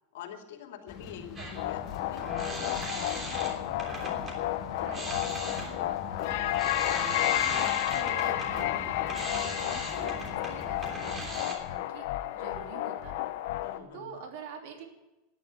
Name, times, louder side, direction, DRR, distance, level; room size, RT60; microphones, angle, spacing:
voice 1, 0.1-2.5 13.6-14.1, left 9 dB, 80° left, 5 dB, 2.4 m, -45 dB
sound 1, 0.9-11.4, left 4 dB, 35° left, 2.2 m, -44 dB
sound 2, 1.4-4.4 4.8-11.6, right 2 dB, 15° right, 3.2 m, -40 dB
sound 3, 1.6-13.8, left 14 dB, 60° left, 1.0 m, -31 dB
voice 2, 4.7-7.5 7.9-12.0 12.3-13.3 13.9-14.8, right 5 dB, 65° right, 3 dB, 3.2 m, -46 dB
14.0 x 10.5 x 9.2 m, 1.0 s
supercardioid pair, 160°, 0 cm